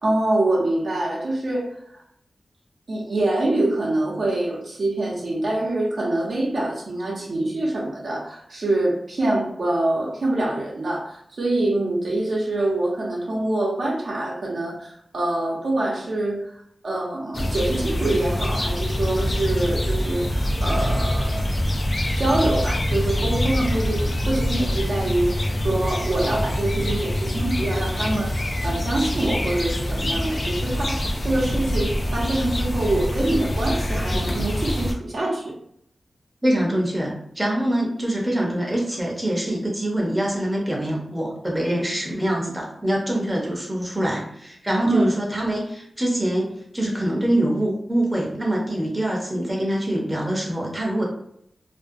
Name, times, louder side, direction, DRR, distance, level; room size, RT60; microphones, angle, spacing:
voice 1, 0.0-1.7 1.9-2.0 2.9-16.5 16.8-21.5 22.1-25.3 25.6-35.5 44.8-45.1, right 2 dB, 65° right, -3 dB, 0.6 m, -25 dB
sound 1, 17.3-34.9, left 1 dB, 35° left, 0.3 m, -25 dB
voice 2, 36.4-51.0, right 1 dB, 10° right, -3 dB, 0.7 m, -24 dB
2.5 x 2.2 x 2.5 m, 0.71 s
wide cardioid pair, 100°, 0 cm